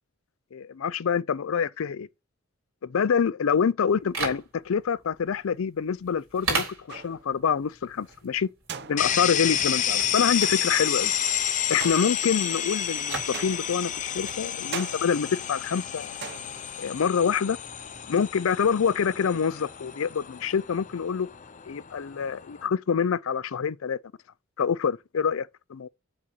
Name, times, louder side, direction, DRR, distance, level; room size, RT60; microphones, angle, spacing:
voice 1, 0.5-2.1 2.8-8.5 8.9-11.1 11.7-16.2 16.8-17.6 18.1-21.3 21.7-24.0 24.6-25.9, left 6 dB, 75° left, 0.5 m, -26 dB
sound 1, 3.9-18.1, right 4 dB, 85° right, 4.7 m, -39 dB
sound 2, 6.9-7.4 8.7-9.4 10.4-10.9 11.8-12.5 13.3-14.0 14.7-15.4 16.2-16.9, right 6 dB, 55° right, 0.7 m, -40 dB
sound 3, 9.0-22.7, left 9 dB, 40° left, 0.7 m, -30 dB
7.4 x 4.2 x 6.0 m
head